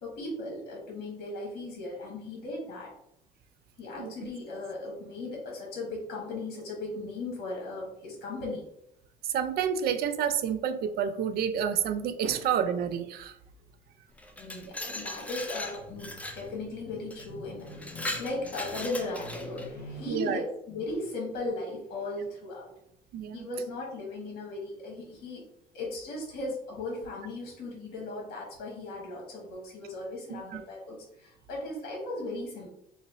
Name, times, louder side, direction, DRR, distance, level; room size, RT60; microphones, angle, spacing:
voice 1, 0.0-2.9 3.8-8.6 14.4-20.4 20.7-22.7 23.3-25.4 25.7-32.7, left 2 dB, 65° left, -2 dB, 1.2 m, -37 dB
voice 2, 9.2-13.4 20.1-20.4 23.1-23.5 30.3-30.6, right 8 dB, 65° right, 11 dB, 0.4 m, -29 dB
Glass, 14.2-16.5 17.1-17.3 17.7-19.7, left 1 dB, 10° left, 0.5 m, -38 dB
3.1 x 2.6 x 4.0 m, 0.78 s
cardioid pair, 110°, 17 cm